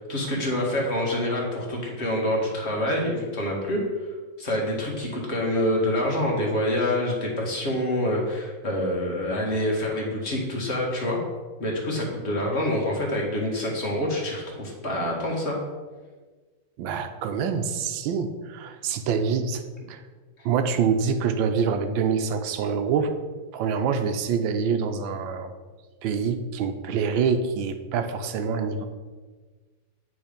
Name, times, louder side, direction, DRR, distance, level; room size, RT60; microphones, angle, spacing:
voice 1, 0.0-3.8 4.4-11.2 11.6-15.6, left 1 dB, 35° left, -2 dB, 1.7 m, -26 dB
voice 2, 16.8-20.0 20.4-23.1 23.5-25.5 26.0-28.9, right 6 dB, 85° right, 8 dB, 1.4 m, -26 dB
8.9 x 3.9 x 5.1 m, 1.4 s
omnidirectional pair, 2.1 m